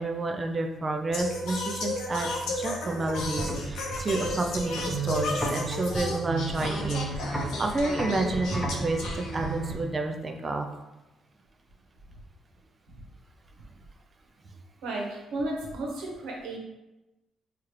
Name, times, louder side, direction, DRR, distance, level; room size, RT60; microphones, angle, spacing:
voice 1, 0.0-2.3 2.6-10.7, right 2 dB, 30° right, 4 dB, 0.4 m, -30 dB
Singing, 1.1-9.8, left 2 dB, 85° left, 0.7 m, -34 dB
sound 1, 3.0-9.7, right 2 dB, ahead, 0.8 m, -34 dB
voice 2, 14.8-16.6, right 2 dB, 85° right, -2 dB, 0.9 m, -33 dB
4.3 x 2.4 x 3.2 m, 1.0 s
cardioid pair, 90°, 0 cm